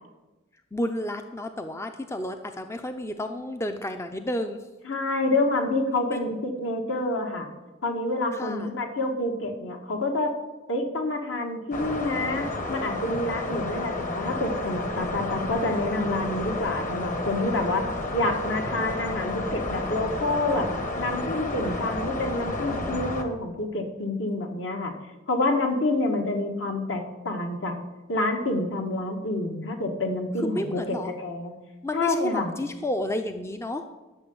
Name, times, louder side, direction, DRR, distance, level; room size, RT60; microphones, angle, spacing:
voice 1, 0.7-4.6 6.1-6.3 8.3-8.7 30.4-31.1 31.8-33.8, left 1 dB, 15° left, 7 dB, 0.5 m, -31 dB
voice 2, 4.8-7.5 7.8-10.3 10.7-17.8 18.1-20.7 21.0-24.9 25.3-27.7 28.1-31.5 31.9-32.5, left 2 dB, 65° left, 3 dB, 1.8 m, -28 dB
sound 1, 11.7-23.2, left 2 dB, 40° left, 1.4 m, -31 dB
12.0 x 6.7 x 7.9 m, 1.1 s
head